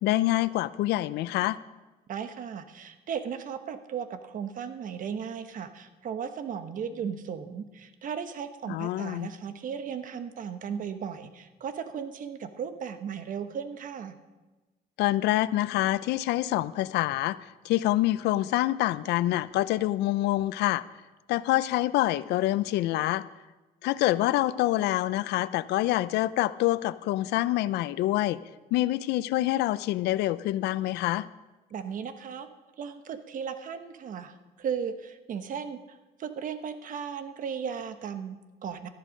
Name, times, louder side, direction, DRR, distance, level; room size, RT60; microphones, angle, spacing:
voice 1, 0.0-1.6 8.7-9.3 15.0-20.8 21.3-23.2 23.8-28.4 28.7-31.3, left 15 dB, 80° left, 17 dB, 0.5 m, -26 dB
voice 2, 2.1-14.1 31.7-32.5 32.8-38.9, right 7 dB, 50° right, 10 dB, 1.1 m, -36 dB
13.5 x 11.0 x 5.2 m, 1.2 s
cardioid pair, 110°, 17 cm